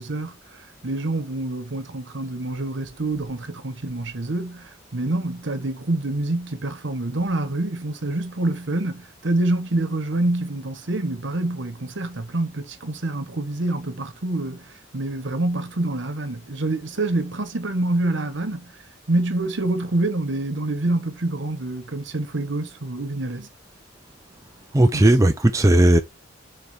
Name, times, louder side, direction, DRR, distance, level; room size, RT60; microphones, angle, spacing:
voice 1, 0.0-18.7 19.1-23.5 24.9-25.1, right 2 dB, 65° right, 1.2 m, -26 dB
voice 2, 24.7-26.0, right 1 dB, 15° right, 0.5 m, -16 dB
6.7 x 4.1 x 3.5 m
head